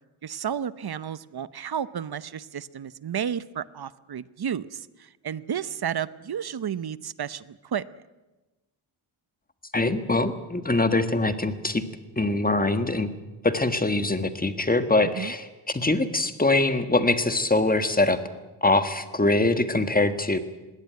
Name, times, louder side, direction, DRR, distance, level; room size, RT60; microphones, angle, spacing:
voice 1, 0.2-7.8 15.1-15.3, right 8 dB, 50° right, 16 dB, 0.8 m, -32 dB
voice 2, 9.7-11.8 12.2-13.1 13.4-18.2 18.6-20.4, left 2 dB, 20° left, 9 dB, 1.6 m, -23 dB
21.0 x 17.5 x 9.3 m, 1.1 s
wide cardioid pair, 100°, 48 cm